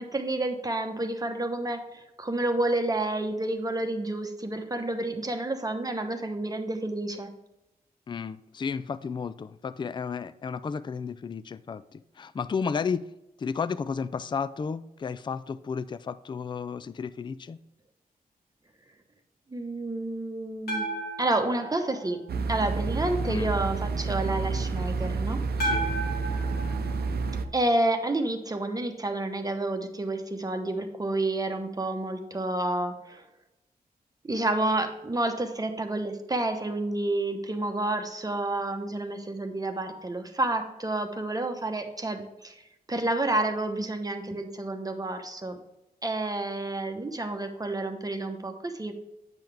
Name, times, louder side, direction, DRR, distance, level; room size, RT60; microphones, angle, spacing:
voice 1, 0.0-7.3 19.5-20.9 21.2-22.2 22.5-25.4 27.5-33.2 34.3-42.6 42.9-45.6 46.0-48.9, right 2 dB, 25° right, 5 dB, 0.9 m, -29 dB
voice 2, 8.1-11.8 12.2-13.0 13.4-17.6 23.3-23.5 25.6-25.9, left 5 dB, 30° left, 15 dB, 0.3 m, -33 dB
sound 1, 20.7-22.9 25.6-28.0, right 1 dB, 85° left, 2.4 m, -35 dB
sound 2, 22.3-27.5, right 4 dB, 80° right, 0.6 m, -29 dB
9.0 x 5.7 x 3.4 m, 0.90 s
cardioid pair, 80°, 16 cm